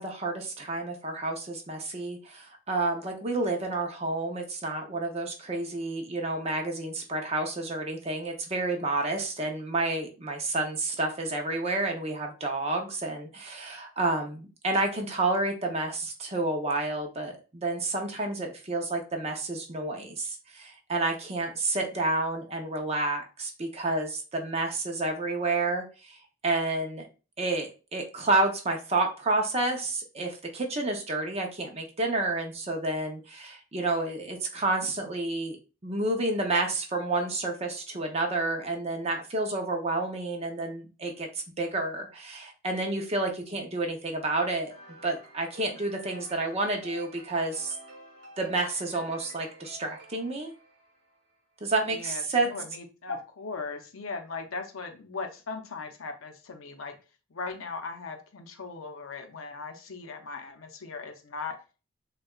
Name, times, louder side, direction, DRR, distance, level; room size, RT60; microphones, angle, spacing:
voice 1, 0.0-26.2 26.4-27.1 27.4-35.6 35.8-44.7 45.0-47.8 48.4-50.5 51.6-52.5, right 2 dB, 30° right, 2 dB, 0.6 m, -30 dB
sound 1, 44.7-51.3, right 1 dB, 50° right, 1.2 m, -51 dB
voice 2, 51.8-57.0 57.3-61.6, left 4 dB, 70° left, 6 dB, 0.7 m, -38 dB
6.4 x 2.3 x 2.3 m, 0.33 s
head